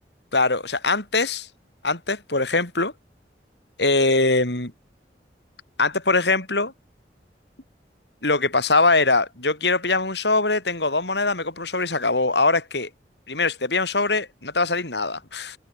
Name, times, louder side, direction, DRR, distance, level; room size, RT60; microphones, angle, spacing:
voice 1, 0.3-1.5 1.8-2.9 3.8-4.7 5.8-6.7 8.2-12.9 13.3-15.6, left 3 dB, 80° left, 6.2 m, -22 dB
head